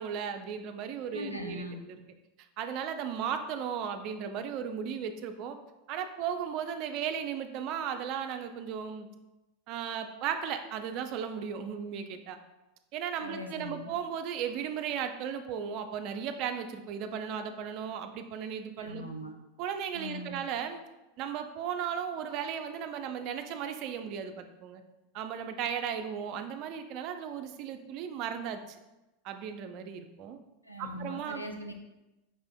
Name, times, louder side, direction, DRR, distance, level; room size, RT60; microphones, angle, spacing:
voice 1, 0.0-2.0 2.6-5.6 5.9-9.1 9.7-12.4 12.9-19.1 19.6-20.8 21.2-24.8 25.1-28.8 29.2-30.4 30.8-31.4, right 8 dB, 45° right, 7 dB, 0.3 m, -36 dB
voice 2, 1.1-1.8 13.2-13.9 18.8-19.3 19.9-20.4 30.6-31.7, equal, 90° left, 3 dB, 0.4 m, -40 dB
5.4 x 2.4 x 2.3 m, 1.0 s
figure-of-eight pair, 85°, 0 cm